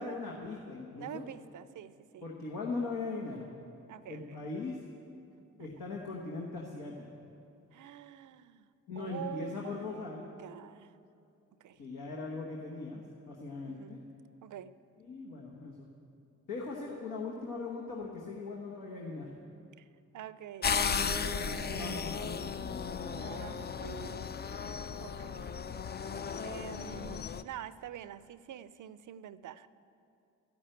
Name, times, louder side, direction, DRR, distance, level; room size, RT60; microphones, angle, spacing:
voice 1, 0.0-1.2 2.2-3.5 4.1-4.8 5.6-7.1 8.9-10.3 11.8-14.0 15.0-15.9 16.5-19.3 21.7-23.2, left 3 dB, 85° left, -2 dB, 1.2 m, -40 dB
voice 2, 1.0-2.3 3.9-4.4 7.7-8.7 9.0-10.9 11.6-11.8 13.6-14.0 14.4-14.7 19.8-19.9 20.1-22.2 23.1-24.3 25.0-25.5 26.4-29.7, right 10 dB, 65° right, 15 dB, 0.5 m, -46 dB
sound 1, 20.6-27.4, left 6 dB, 30° left, 0.4 m, -35 dB
13.0 x 6.1 x 8.9 m, 2.6 s
supercardioid pair, 45°, 32 cm